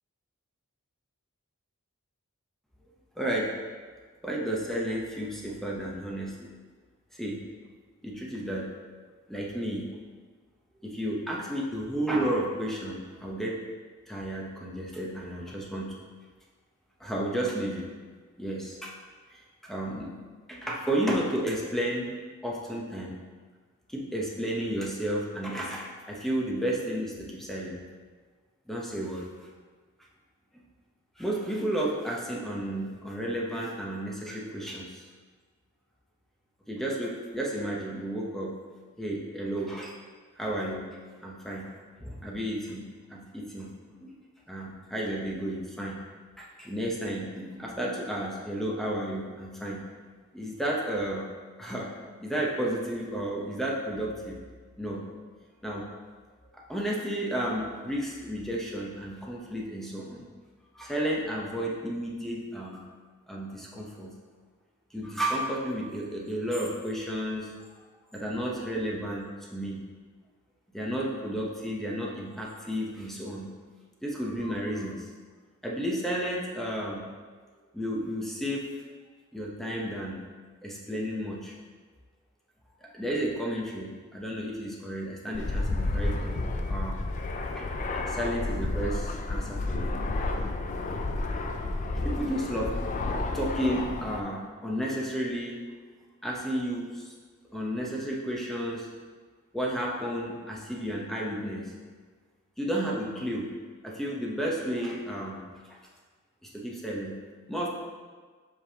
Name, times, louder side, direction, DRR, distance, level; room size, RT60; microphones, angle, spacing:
voice 1, 3.2-3.5 4.2-6.5 7.1-7.4 8.0-8.7 9.3-9.9 10.8-13.6 14.1-15.9 17.0-17.9 18.4-18.9 19.3-20.2 20.5-22.1 22.4-23.2 23.9-27.8 28.7-29.3 31.2-35.0 36.7-38.5 39.0-39.9 40.4-40.9 41.2-41.7 42.0-43.7 44.0-44.1 44.5-46.0 46.4-49.8 50.3-51.3 51.6-51.9 52.2-54.4 54.8-55.0 55.6-55.9 56.5-60.3 60.7-62.8 63.3-64.1 64.9-67.5 68.1-69.8 70.7-73.5 74.0-75.1 75.6-77.0 77.7-78.6 79.3-80.2 80.6-81.5 82.8-86.4 86.7-87.0 87.4-87.7 87.9-90.0 92.0-92.7 93.3-95.6 96.2-97.1 97.5-98.9 99.5-101.7 102.6-103.5 103.8-105.8 106.4-107.2 107.5-107.7, right 1 dB, ahead, -3 dB, 0.8 m, -32 dB
Fixed-wing aircraft airplane, 85.3-94.2, left 2 dB, 35° left, 0.4 m, -31 dB
7.5 x 5.3 x 2.8 m, 1.5 s
head